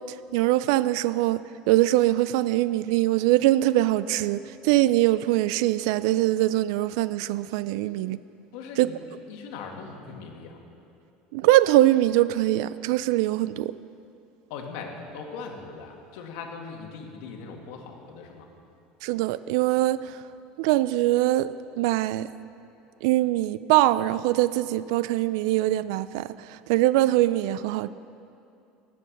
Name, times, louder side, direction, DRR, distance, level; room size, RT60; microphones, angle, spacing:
voice 1, 0.1-8.2 8.8-8.9 11.3-13.7 19.0-20.2 20.6-22.3 23.0-27.9, right 15 dB, 80° right, 16 dB, 0.3 m, -23 dB
voice 2, 8.5-9.0 9.3-10.6 14.5-18.5, left 5 dB, 75° left, 2 dB, 2.0 m, -40 dB
18.5 x 7.7 x 6.5 m, 2.6 s
cardioid pair, 140°, 3 cm